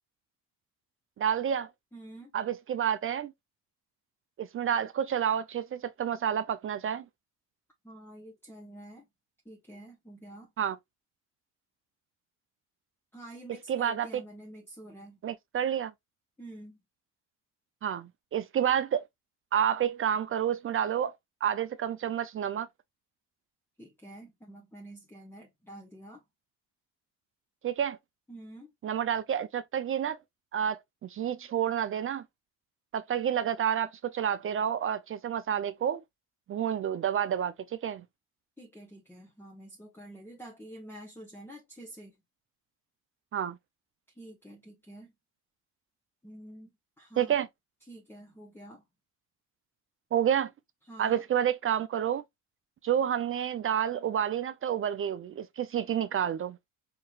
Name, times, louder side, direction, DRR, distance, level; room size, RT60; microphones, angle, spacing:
voice 1, 1.2-1.7 2.3-3.3 4.4-7.0 10.6-10.8 13.7-14.1 15.2-15.9 17.8-19.1 19.5-21.1 21.4-22.7 27.6-28.0 28.8-30.2 30.5-32.2 32.9-36.0 36.5-38.0 43.3-43.6 47.2-47.5 50.1-50.5 51.0-52.2 52.8-56.6, right 9 dB, 40° right, 0.4 m, -29 dB
voice 2, 1.9-2.3 7.8-9.1 9.4-10.5 13.1-15.2 16.4-16.8 23.8-26.2 28.3-28.7 38.6-42.2 44.1-45.1 46.2-46.7 47.0-47.4 47.8-48.8 50.8-51.2, right 1 dB, 5° left, 0.9 m, -48 dB
4.6 x 2.8 x 2.3 m
supercardioid pair, 80°, 35 cm